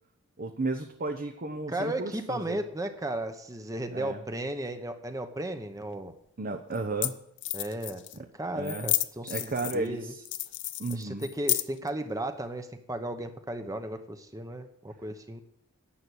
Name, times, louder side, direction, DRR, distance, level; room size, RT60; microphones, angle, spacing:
voice 1, 0.4-2.6 3.9-4.2 6.4-7.1 8.5-8.9 9.3-10.2 10.8-11.2, right 3 dB, 40° right, 6 dB, 0.8 m, -33 dB
voice 2, 1.7-6.1 7.5-8.0 8.3-10.1 10.9-15.4, right 1 dB, 15° right, 8 dB, 1.0 m, -35 dB
sound 1, 5.9-6.0 6.8-6.9 7.0-7.1 7.4-8.2 8.6-9.9 10.2-11.9, left 15 dB, 55° left, 0.6 m, -31 dB
11.5 x 7.7 x 8.3 m, 0.72 s
head